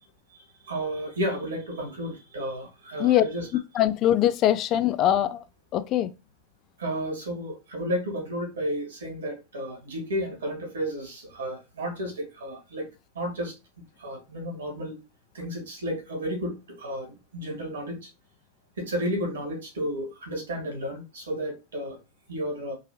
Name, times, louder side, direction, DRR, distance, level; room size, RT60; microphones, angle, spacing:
voice 1, 0.3-3.5 6.8-12.8 13.1-13.5 14.0-15.0 15.3-18.1 18.8-22.0 22.3-22.7, equal, 80° right, 1.6 m, -32 dB
voice 2, 3.8-5.4 5.7-6.1, left 12 dB, 45° left, 0.3 m, -22 dB
4.0 x 2.6 x 2.7 m
hypercardioid pair, 90°, 0 cm